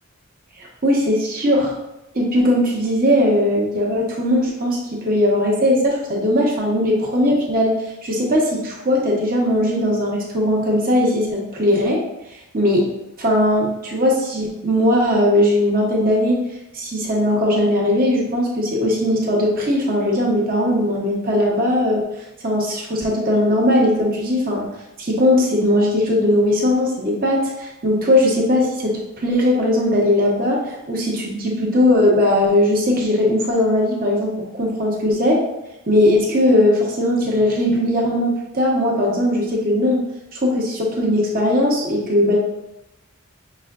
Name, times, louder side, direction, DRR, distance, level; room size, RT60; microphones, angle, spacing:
voice 1, 0.6-1.7 2.1-7.7 8.0-12.0 12.5-12.9 13.2-16.4 16.7-22.1 22.4-24.7 25.0-35.4 35.9-40.0 40.3-42.4, left 1 dB, 45° right, -2 dB, 1.1 m, -19 dB
5.8 x 2.3 x 3.7 m, 0.93 s
head